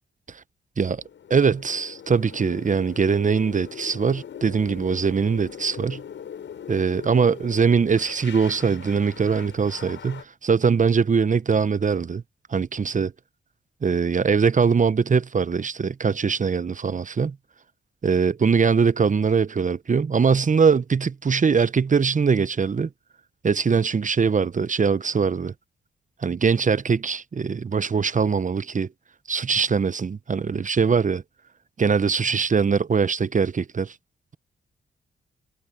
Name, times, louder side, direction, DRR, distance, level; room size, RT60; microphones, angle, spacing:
sound 1, 0.9-10.2, left 8 dB, 70° left, 6.8 m, -41 dB
voice 1, 1.3-6.0 6.7-12.2 12.5-13.1 13.8-17.4 18.0-22.9 23.4-25.5 26.2-28.9 29.3-31.2 31.8-33.9, right 5 dB, 40° right, 0.9 m, -22 dB
supercardioid pair, 45°, 20 cm